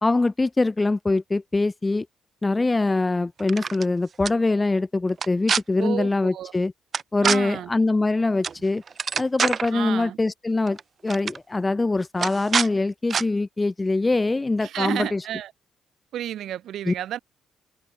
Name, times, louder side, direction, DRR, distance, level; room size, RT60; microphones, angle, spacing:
voice 1, 0.0-2.1 2.4-6.7 7.1-8.8 9.2-10.8 11.0-15.2 16.8-16.9, left 2 dB, 20° left, 1.2 m, -23 dB
sound 1, 3.4-3.9 4.2-4.3 5.1-5.6 6.9-7.4 8.4-8.6 8.9-9.7 10.7-10.8 11.1-11.4 12.2-12.7 13.1-13.2, right 6 dB, 45° right, 4.4 m, -25 dB
voice 2, 5.8-6.5 7.2-7.7 9.7-10.2 14.6-15.5 16.1-17.2, right 11 dB, 75° right, 3.6 m, -31 dB
cardioid pair, 90°, 0 cm